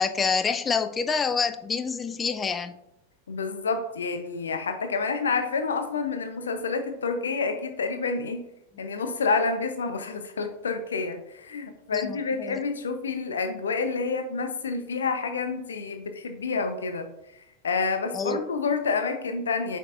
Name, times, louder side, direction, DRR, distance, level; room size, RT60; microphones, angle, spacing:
voice 1, 0.0-2.8 11.9-12.6 18.1-18.4, left 5 dB, 20° left, 10 dB, 0.4 m, -27 dB
voice 2, 3.3-8.4 8.8-17.1 17.6-19.8, left 4 dB, 70° left, 8 dB, 0.8 m, -28 dB
8.3 x 5.4 x 2.5 m, 0.84 s
figure-of-eight pair, 90°, 0 cm